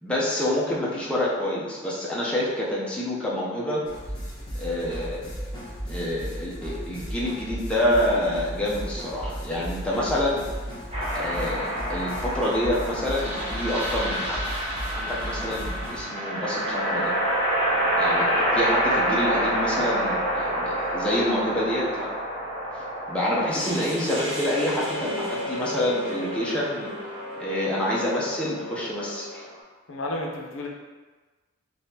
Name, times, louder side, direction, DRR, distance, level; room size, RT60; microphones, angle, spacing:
voice 1, 0.0-3.8 4.6-5.3 5.8-10.5 11.1-14.4 14.9-17.1 18.0-22.1 22.7-29.5, left 1 dB, 5° left, -6 dB, 0.6 m, -27 dB
sound 1, 3.8-16.0, equal, 20° left, 1.1 m, -35 dB
sound 2, 10.9-29.6, equal, 30° right, 1.0 m, -28 dB
voice 2, 29.9-30.7, left 1 dB, 75° left, 0 dB, 0.5 m, -32 dB
3.8 x 2.9 x 2.7 m, 1.3 s
head